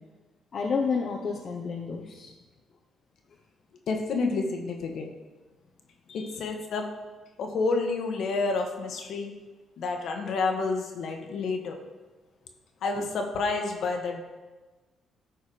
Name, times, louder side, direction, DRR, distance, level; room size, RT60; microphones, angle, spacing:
voice 1, 0.5-2.3 6.1-6.3, left 5 dB, 55° left, 0 dB, 1.0 m, -30 dB
voice 2, 3.9-5.1 6.1-6.9 7.4-9.3 9.8-11.8 12.8-14.2, left 3 dB, 70° left, 3 dB, 1.4 m, -29 dB
12.5 x 4.6 x 5.0 m, 1.2 s
cardioid pair, 90°, 0 cm